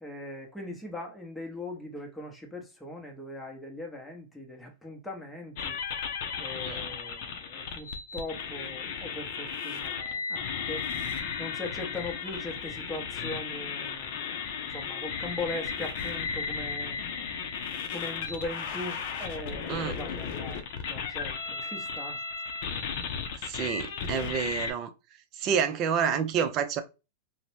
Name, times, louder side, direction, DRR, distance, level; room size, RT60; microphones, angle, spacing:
voice 1, 0.0-5.8 6.4-10.9 11.4-14.3 14.7-17.0 17.9-22.2, left 2 dB, 5° left, 0.8 m, -40 dB
sound 1, 5.6-24.7, left 6 dB, 55° left, 0.5 m, -35 dB
voice 2, 23.4-24.9 25.4-26.8, right 7 dB, 40° right, 0.5 m, -28 dB
2.5 x 2.1 x 3.1 m
hypercardioid pair, 95°, 0 cm